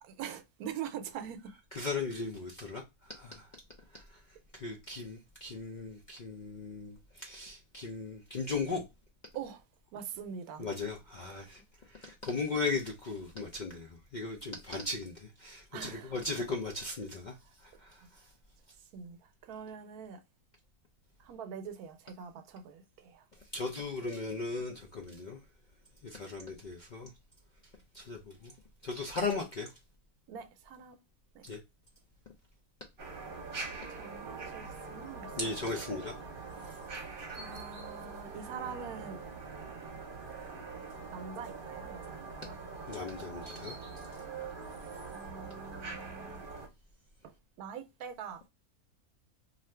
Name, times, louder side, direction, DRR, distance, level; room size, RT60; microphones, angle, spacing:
voice 1, 0.0-1.5 9.3-9.6 9.9-10.7 15.7-16.2 18.9-20.2 21.2-23.2 30.3-31.0 31.3-31.4 33.9-35.6 37.3-39.2 41.1-42.6 45.1-46.4 47.2-48.5, right 7 dB, 85° right, 1.1 m, -44 dB
voice 2, 1.7-3.5 3.9-4.2 4.5-8.8 10.6-11.6 11.9-17.4 17.6-18.0 23.5-25.4 26.0-27.1 27.9-28.5 28.8-29.7 31.4-31.6 35.4-36.2 42.9-43.8, left 3 dB, 75° left, 0.4 m, -37 dB
sound 1, 33.0-46.7, right 4 dB, 45° right, 0.9 m, -43 dB
2.7 x 2.4 x 3.1 m
omnidirectional pair, 1.5 m